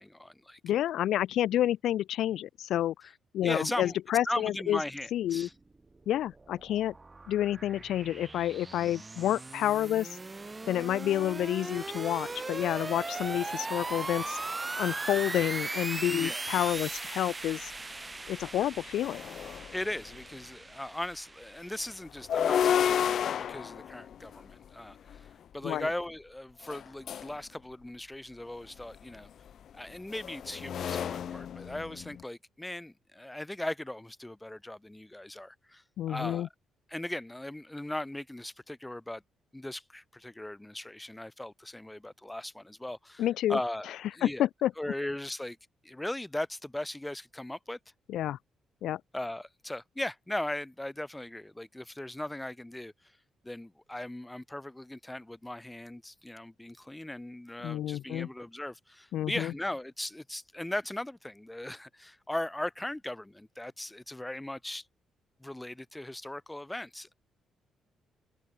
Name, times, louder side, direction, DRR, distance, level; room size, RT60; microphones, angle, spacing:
voice 1, 0.0-0.6 3.4-4.0 4.3-5.5 16.1-16.6 19.7-23.0 23.5-25.3 25.5-29.3 29.7-36.5 36.9-39.2 39.5-43.2 43.5-44.5 44.8-45.6 45.8-47.8 49.1-52.9 53.4-64.8 65.4-67.1, left 1 dB, 10° left, 2.1 m, -38 dB
voice 2, 0.6-2.9 3.3-4.8 5.1-5.5 6.1-6.9 7.3-10.2 10.7-14.4 14.8-17.7 18.3-19.2 25.6-25.9 36.0-36.5 43.2-43.6 44.2-44.7 48.1-48.4 48.8-49.0 57.6-58.3 59.1-59.5, left 12 dB, 80° left, 0.5 m, -29 dB
sound 1, 5.9-22.0, right 3 dB, 20° right, 3.9 m, -39 dB
sound 2, 17.7-17.8 18.3-20.2 22.1-25.3 26.6-27.4 28.8-32.2, left 9 dB, 60° left, 3.2 m, -32 dB
cardioid pair, 90°, 0 cm